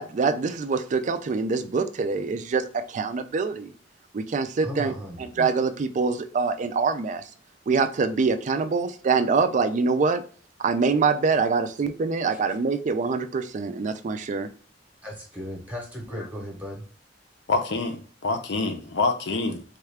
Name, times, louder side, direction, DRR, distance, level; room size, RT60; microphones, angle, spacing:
voice 1, 0.0-3.7 4.1-7.2 7.7-10.2 10.6-14.5, right 4 dB, 40° right, 9 dB, 0.3 m, -25 dB
voice 2, 4.6-5.2 12.3-12.4 15.0-16.8, left 1 dB, 10° right, -2 dB, 0.8 m, -36 dB
voice 3, 17.5-19.6, left 3 dB, 65° left, 7 dB, 0.6 m, -26 dB
3.6 x 2.3 x 3.3 m, 0.42 s
head